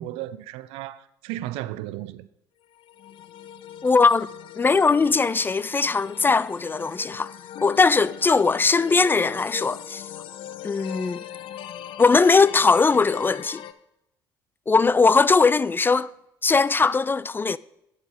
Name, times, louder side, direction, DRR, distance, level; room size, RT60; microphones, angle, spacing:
voice 1, 0.0-2.3, right 14 dB, 65° right, 0.5 m, -34 dB
sound 1, 2.7-13.7, left 10 dB, 55° left, 0.6 m, -40 dB
voice 2, 3.8-4.3 4.6-7.3 7.6-10.0 10.6-11.2 12.0-13.6 14.7-16.1 16.4-17.6, left 4 dB, 20° left, 0.3 m, -20 dB
8.2 x 7.8 x 4.8 m
hypercardioid pair, 60°, 10 cm